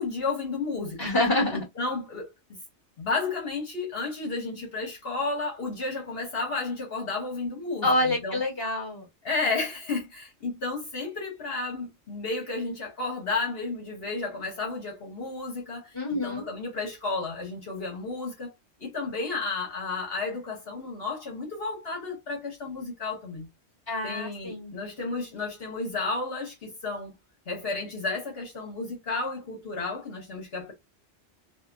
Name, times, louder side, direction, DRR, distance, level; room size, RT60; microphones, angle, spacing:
voice 1, 0.0-1.1 1.5-2.3 3.0-8.4 9.2-18.5 18.8-23.5 24.0-27.1 27.5-30.7, left 3 dB, 65° left, 1.2 m, -32 dB
voice 2, 1.0-1.6 7.8-9.1 15.9-16.5 23.9-24.7, left 1 dB, 20° left, 1.4 m, -27 dB
2.8 x 2.2 x 2.3 m
omnidirectional pair, 1.1 m